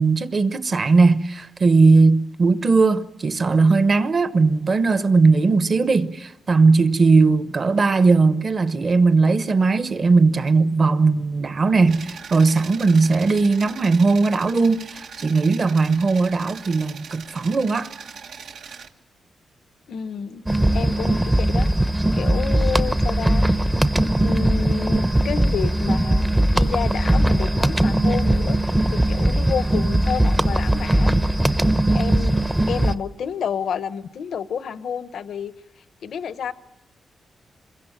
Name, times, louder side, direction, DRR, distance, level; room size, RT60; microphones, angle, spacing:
voice 1, 0.0-17.9, right 4 dB, 35° right, 1.1 m, -18 dB
sound 1, 11.9-18.9, right 6 dB, 80° right, 1.6 m, -40 dB
voice 2, 19.9-20.5 20.7-21.7 22.1-23.6 24.2-31.1 31.9-35.5 36.0-36.5, left 7 dB, 70° left, 0.9 m, -30 dB
sound 2, 20.5-32.9, right 1 dB, 10° right, 0.8 m, -19 dB
27.0 x 22.5 x 7.3 m
wide cardioid pair, 145°, 0 cm